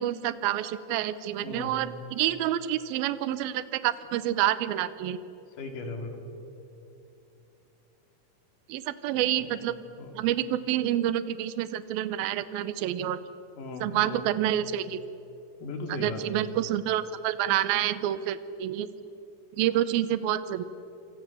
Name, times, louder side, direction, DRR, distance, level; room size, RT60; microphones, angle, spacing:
voice 1, 0.0-5.2 8.7-9.7 10.1-13.2 13.8-15.0 16.0-18.9 19.5-20.6, right 12 dB, 85° right, 14 dB, 2.7 m, -28 dB
voice 2, 1.4-1.8 5.6-6.3 9.4-10.2 13.6-14.3 15.6-16.4, left 2 dB, 65° left, 5 dB, 3.9 m, -38 dB
28.0 x 26.0 x 7.1 m, 2.9 s
omnidirectional pair, 4.2 m